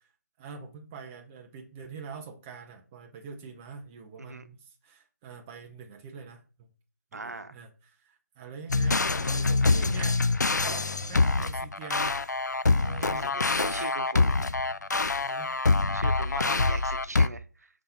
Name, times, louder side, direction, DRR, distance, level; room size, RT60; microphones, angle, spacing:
voice 1, 0.4-6.7 7.1-10.2 10.5-12.2 12.6-13.4 15.2-15.5 16.4-16.8, right 5 dB, 10° right, 2 dB, 0.3 m, -44 dB
voice 2, 7.1-7.6 13.0-14.4 15.9-17.7, right 3 dB, 65° right, 10 dB, 0.9 m, -40 dB
sound 1, 8.7-17.3, left 3 dB, 75° left, 0.5 m, -25 dB
5.6 x 3.7 x 5.3 m, 0.36 s
figure-of-eight pair, 160°, 9 cm